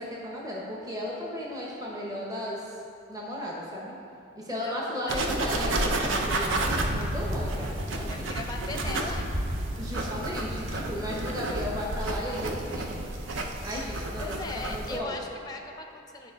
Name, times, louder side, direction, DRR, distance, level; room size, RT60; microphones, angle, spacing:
voice 1, 0.0-2.7 3.1-3.9 4.3-8.3 9.8-13.0 13.6-14.4 14.7-15.1, equal, 20° right, -4 dB, 0.9 m, -35 dB
voice 2, 4.6-5.4 8.1-9.3 14.1-16.3, left 3 dB, 20° left, 3 dB, 0.5 m, -39 dB
sound 1, 5.1-15.0, right 2 dB, 75° right, 0.7 m, -32 dB
Thunder, 6.6-14.9, equal, 35° right, 0.6 m, -35 dB
9.8 x 4.4 x 5.2 m, 2.5 s
head